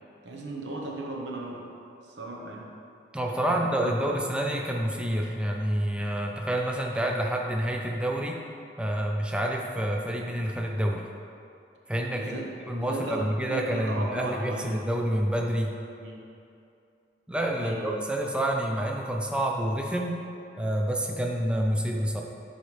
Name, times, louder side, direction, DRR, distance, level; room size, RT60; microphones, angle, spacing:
voice 1, 0.2-1.6 2.0-2.7 3.4-4.1 8.1-8.3 9.9-10.1 12.1-14.8 16.0-16.3 17.5-17.9, right 2 dB, 90° right, -1 dB, 0.9 m, -37 dB
voice 2, 3.1-8.4 8.8-11.0 11.9-12.3 12.7-15.7 17.3-20.2 20.6-22.2, right 1 dB, 5° right, 0 dB, 0.5 m, -28 dB
9.5 x 4.1 x 3.3 m, 2.5 s
head